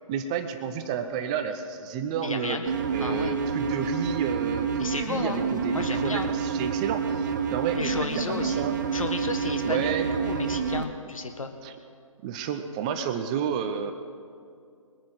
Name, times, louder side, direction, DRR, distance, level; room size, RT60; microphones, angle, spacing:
voice 1, 0.1-2.6 2.9-8.8 9.6-10.1 11.6-11.7 12.2-13.9, right 7 dB, 10° right, 8 dB, 0.4 m, -31 dB
voice 2, 2.2-2.7 3.0-3.4 4.8-5.4 5.7-6.3 7.7-8.7 8.9-11.5, left 3 dB, 75° left, 6 dB, 1.4 m, -32 dB
sound 1, 2.7-10.8, right 6 dB, 35° right, 0.9 m, -28 dB
22.5 x 9.4 x 4.1 m, 2.4 s
figure-of-eight pair, 140°, 18 cm